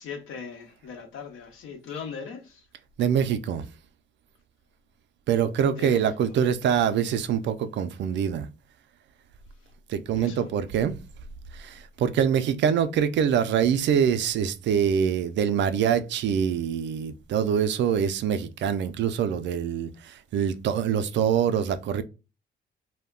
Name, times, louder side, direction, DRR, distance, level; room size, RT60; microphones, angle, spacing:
voice 1, 0.0-2.6 5.8-6.0 10.1-10.5, left 6 dB, 85° left, 0.8 m, -39 dB
voice 2, 3.0-3.7 5.3-8.5 9.9-11.0 11.5-22.0, right 8 dB, 65° right, 0.4 m, -24 dB
2.2 x 2.1 x 3.5 m
cardioid pair, 90°, 20 cm